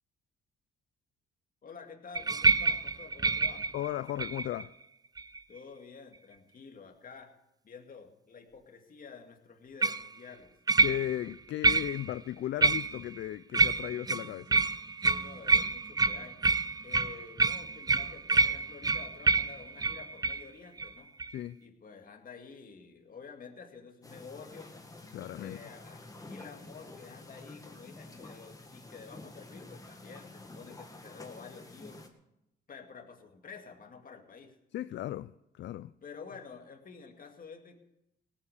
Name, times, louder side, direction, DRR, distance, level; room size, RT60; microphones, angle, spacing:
voice 1, 1.6-3.7 5.5-7.3 7.6-10.5 13.5-13.7 15.0-16.4 16.8-21.1 21.6-24.7 25.4-32.0 32.7-34.5 36.0-37.8, left 5 dB, 45° left, 2.4 m, -50 dB
sound 1, 2.1-4.6 5.2-5.6 9.8-10.1 10.7-11.3 11.6-12.1 12.6-13.2 13.5-20.4 20.8-20.9 21.2-21.3, right 4 dB, 20° right, 0.5 m, -28 dB
voice 2, 3.7-4.7 10.8-14.6 21.3-21.6 25.1-25.6 34.7-35.3 35.6-35.9, left 13 dB, 65° left, 0.4 m, -36 dB
sound 2, 24.0-32.1, left 2 dB, 15° left, 1.9 m, -49 dB
17.5 x 8.6 x 6.7 m
cardioid pair, 90°, 20 cm